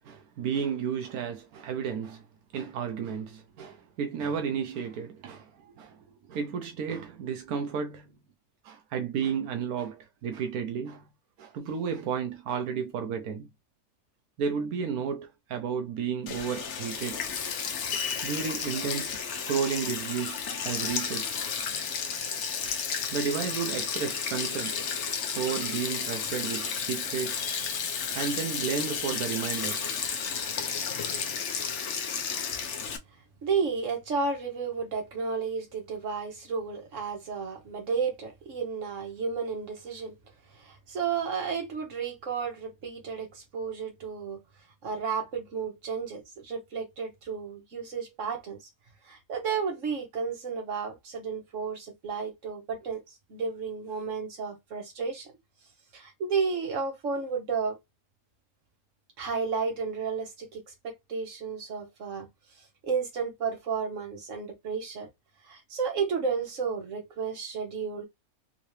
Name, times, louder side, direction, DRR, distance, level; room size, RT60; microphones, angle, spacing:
voice 1, 0.0-2.2 2.5-8.1 8.6-11.1 11.4-13.5 14.4-17.2 18.2-21.4 23.1-24.8 25.3-27.5 28.1-30.0, right 7 dB, 90° right, 1.2 m, -32 dB
Sink (filling or washing), 16.3-33.0, left 6 dB, 60° left, 1.0 m, -32 dB
voice 2, 33.4-40.1 40.6-44.4 44.8-48.7 49.0-53.0 53.3-55.3 55.9-57.8 59.2-62.3 62.8-65.1 65.5-68.0, right 5 dB, 60° right, 1.6 m, -32 dB
3.7 x 2.8 x 3.1 m
omnidirectional pair, 1.5 m